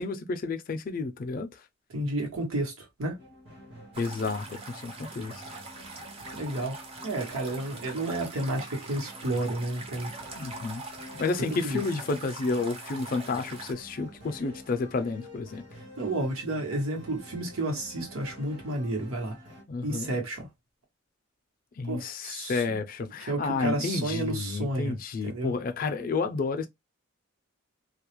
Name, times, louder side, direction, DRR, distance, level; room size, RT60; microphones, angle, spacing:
voice 1, 0.0-1.5 4.0-5.4 10.4-10.8 11.2-15.6 19.7-20.2 21.8-26.7, left 4 dB, 40° left, 0.3 m, -31 dB
voice 2, 1.9-3.2 6.3-6.8 7.0-10.1 11.1-11.2 11.6-11.8 16.0-19.4 19.8-20.5 21.8-22.8 23.3-25.0 25.2-25.5, right 1 dB, 90° right, 1.0 m, -31 dB
sound 1, 3.2-19.6, equal, 55° right, 0.9 m, -49 dB
sound 2, 3.9-13.7, right 3 dB, 25° right, 0.4 m, -43 dB
2.3 x 2.0 x 2.9 m
head